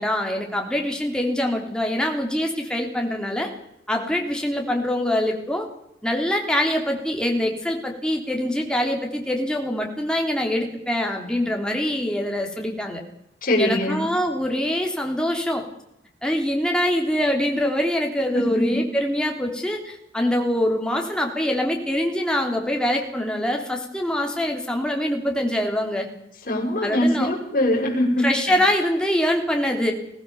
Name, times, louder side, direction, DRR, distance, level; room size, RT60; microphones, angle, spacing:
voice 1, 0.0-3.5 3.9-5.7 6.0-13.0 13.6-15.6 16.2-26.1 26.8-27.3 28.2-29.9, left 1 dB, 5° left, 2 dB, 3.3 m, -24 dB
voice 2, 13.4-14.1 18.3-18.8 26.5-28.6, left 1 dB, 50° left, -2 dB, 6.4 m, -22 dB
22.0 x 17.0 x 7.1 m, 0.81 s
head